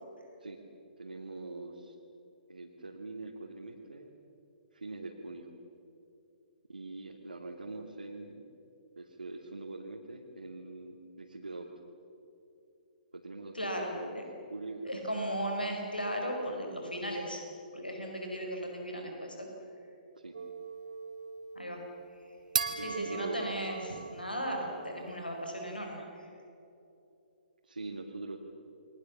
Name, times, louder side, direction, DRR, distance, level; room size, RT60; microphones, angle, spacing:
voice 1, 1.0-2.0 2.5-4.1 4.7-5.5 6.7-8.4 9.0-11.7 13.1-14.2 14.5-15.0 20.1-20.4 22.7-23.5 27.6-28.4, right 2 dB, 80° right, -2 dB, 2.8 m, -43 dB
voice 2, 13.5-14.2 14.8-17.4 17.7-19.5 21.5-21.8 22.8-23.8 24.1-26.3, equal, 90° left, 2 dB, 5.0 m, -36 dB
sound 1, 20.3-25.2, right 5 dB, 60° right, 2.1 m, -39 dB
29.5 x 23.0 x 7.4 m, 2.8 s
figure-of-eight pair, 125°, 5 cm